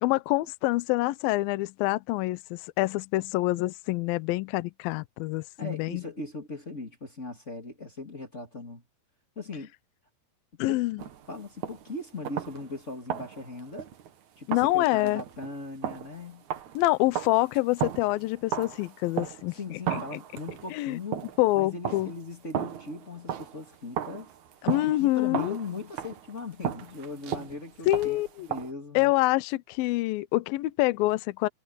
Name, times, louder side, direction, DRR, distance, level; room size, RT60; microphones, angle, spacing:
voice 1, 0.0-6.0 10.6-11.0 14.5-15.2 16.7-19.6 19.9-20.0 20.7-21.0 21.4-22.1 24.6-25.6 27.9-28.5 28.9-31.5, left 19 dB, 85° left, 2.1 m, -26 dB
voice 2, 5.6-8.8 9.4-9.7 10.7-10.8 11.3-13.9 14.4-16.4 19.5-21.2 21.5-24.3 24.8-29.1, left 3 dB, 25° left, 1.9 m, -39 dB
sound 1, 11.0-11.9 12.3-12.8 13.1-14.1 14.5-19.6 19.8-21.5 21.9-23.7 24.0-28.7, right 10 dB, 60° right, 2.1 m, -35 dB
omnidirectional pair, 5.1 m